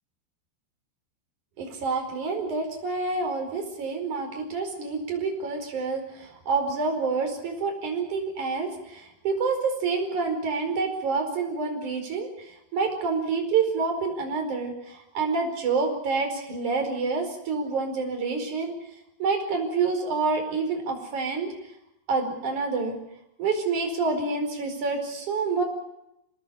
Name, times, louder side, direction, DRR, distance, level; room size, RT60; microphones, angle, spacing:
voice 1, 1.6-18.7 19.2-21.5 22.1-23.0 23.4-25.6, right 4 dB, 45° right, 5 dB, 6.0 m, -28 dB
27.5 x 19.5 x 7.1 m, 0.84 s
omnidirectional pair, 4.9 m